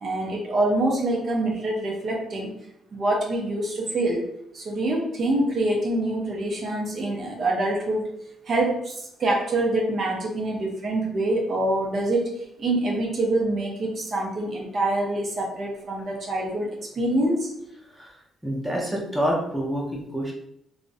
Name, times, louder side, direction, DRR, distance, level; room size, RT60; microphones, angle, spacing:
voice 1, 0.0-2.5 2.9-4.3 4.5-8.1 8.5-17.5, right 1 dB, 50° right, -1 dB, 0.5 m, -25 dB
voice 2, 18.4-20.3, equal, 5° right, -3 dB, 0.6 m, -27 dB
2.4 x 2.0 x 2.5 m, 0.76 s
cardioid pair, 90°, 0 cm